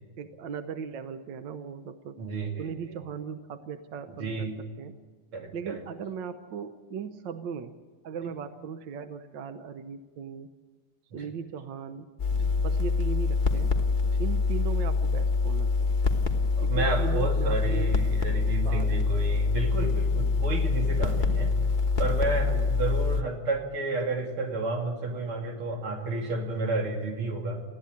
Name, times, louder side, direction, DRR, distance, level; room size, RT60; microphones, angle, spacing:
voice 1, 0.2-2.2 2.6-5.0 5.5-7.7 8.0-10.5 11.1-12.1 12.6-13.7 14.2-15.9 16.6-18.0 18.4-19.1 22.4-22.7, right 6 dB, 65° right, 10 dB, 1.5 m, -38 dB
voice 2, 2.2-3.0 4.1-4.6 5.3-5.8 11.2-11.3 12.3-12.5 14.0-14.2 16.6-21.5 22.0-27.6, right 3 dB, 85° right, 2 dB, 3.5 m, -31 dB
sound 1, 12.2-23.2, left 4 dB, 30° left, 1.1 m, -25 dB
20.0 x 15.0 x 9.6 m, 1.4 s
omnidirectional pair, 2.3 m